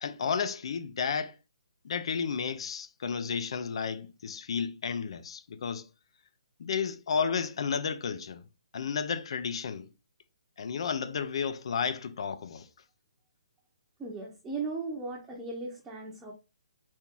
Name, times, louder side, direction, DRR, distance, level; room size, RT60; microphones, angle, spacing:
voice 1, 0.0-1.4 1.8-5.9 6.6-8.4 8.7-9.9 10.6-12.7, left 6 dB, 60° left, 0.5 m, -32 dB
voice 2, 14.0-16.3, right 3 dB, 10° right, 0.8 m, -37 dB
4.3 x 2.9 x 3.6 m
hypercardioid pair, 155°, 3 cm